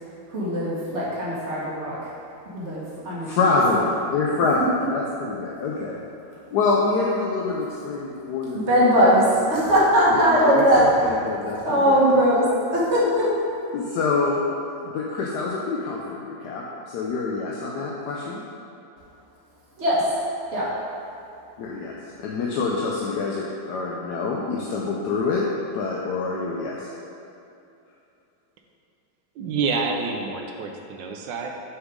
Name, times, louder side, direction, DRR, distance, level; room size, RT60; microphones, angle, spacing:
voice 1, 0.3-2.1 2.5-3.4 8.7-10.9 11.6-12.5 12.7-13.3 19.8-20.1 20.5-20.7, equal, 40° right, -8 dB, 1.7 m, -20 dB
voice 2, 3.2-6.0 6.5-9.2 10.1-12.0 13.7-14.4 14.8-18.4 21.6-25.5 25.7-26.9, left 3 dB, 70° left, -3 dB, 1.1 m, -26 dB
voice 3, 29.3-31.5, right 4 dB, 75° right, 2 dB, 1.3 m, -28 dB
6.3 x 6.2 x 3.7 m, 2.7 s
omnidirectional pair, 2.1 m